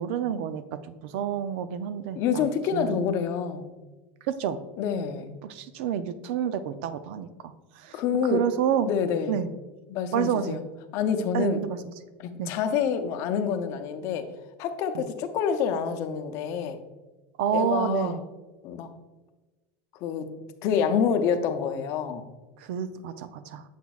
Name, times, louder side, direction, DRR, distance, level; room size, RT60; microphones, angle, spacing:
voice 1, 0.0-3.0 4.2-4.6 5.4-8.0 8.3-8.9 9.3-9.5 10.1-10.6 11.3-11.8 12.4-12.5 14.9-15.1 17.4-18.2 22.6-23.6, right 9 dB, 70° right, 12 dB, 0.4 m, -29 dB
voice 2, 2.2-3.7 4.8-5.3 7.9-8.4 8.9-9.4 9.9-10.6 10.9-11.6 12.2-14.3 14.6-16.8 17.5-18.2 18.6-18.9 20.0-20.3 20.6-22.2, left 7 dB, 50° left, 8 dB, 0.6 m, -27 dB
7.1 x 5.9 x 2.3 m, 1.2 s
supercardioid pair, 135°, 6 cm